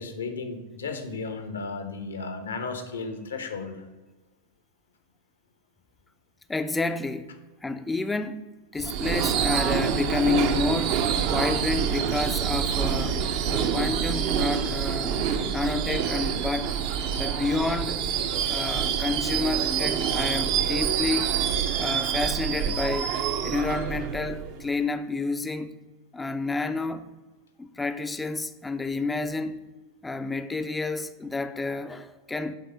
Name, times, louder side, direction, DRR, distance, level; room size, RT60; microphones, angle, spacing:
voice 1, 0.0-3.9, left 4 dB, 70° left, 0.9 m, -34 dB
voice 2, 6.5-7.3 7.6-8.4 8.7-11.0 11.3-13.2 13.5-15.2 15.5-16.7 17.2-18.1 18.5-21.3 21.8-23.1 23.4-25.7 26.1-27.1 27.6-29.6 30.0-32.5, left 3 dB, 10° left, 0.4 m, -29 dB
Subway metro underground / Screech, 8.8-24.7, right 8 dB, 45° right, 0.6 m, -26 dB
7.7 x 3.3 x 5.5 m
figure-of-eight pair, 90°, 0 cm